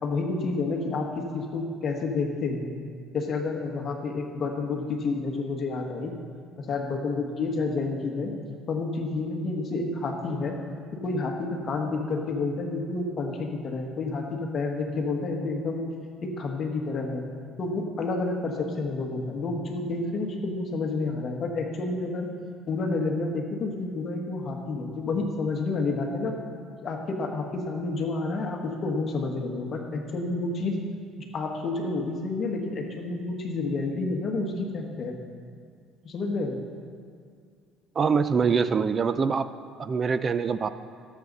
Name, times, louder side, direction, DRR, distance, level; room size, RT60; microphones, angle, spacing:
voice 1, 0.0-2.7 3.1-6.1 6.6-8.3 8.7-10.6 11.0-15.8 16.2-17.3 17.6-22.3 22.7-26.4 26.8-30.8 31.2-35.2 36.0-36.6, left 3 dB, 40° left, 2 dB, 1.5 m, -29 dB
voice 2, 38.0-39.5 39.8-40.7, right 5 dB, 30° right, 13 dB, 0.4 m, -24 dB
17.0 x 7.4 x 4.1 m, 2.2 s
cardioid pair, 115°, 0 cm